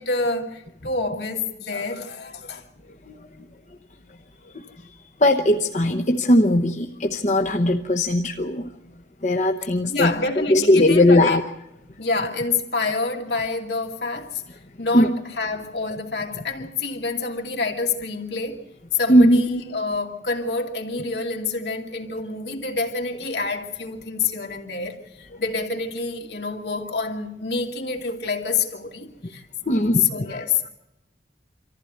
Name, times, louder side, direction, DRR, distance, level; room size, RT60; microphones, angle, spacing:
voice 1, 0.0-2.6 9.9-11.4 12.0-14.4 14.8-18.6 18.9-29.5 29.9-30.7, left 4 dB, 75° left, 2.5 m, -27 dB
voice 2, 5.2-8.7 9.2-10.1 10.5-11.4 14.9-15.1 19.1-19.4 29.7-30.0 30.3-30.7, left 1 dB, 40° left, 1.0 m, -18 dB
25.5 x 14.5 x 8.0 m
head